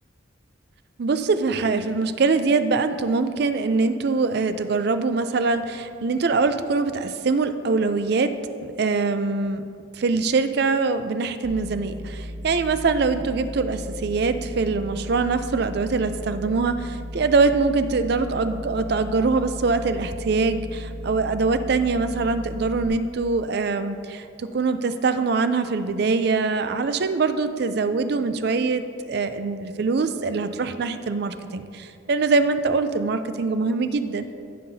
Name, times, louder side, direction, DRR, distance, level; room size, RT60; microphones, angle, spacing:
voice 1, 1.0-8.3 8.6-9.6 9.9-34.3, right 4 dB, 55° right, 10 dB, 0.4 m, -23 dB
sound 1, 11.4-22.9, equal, ahead, 1.0 m, -36 dB
15.5 x 5.7 x 2.7 m, 2.5 s
head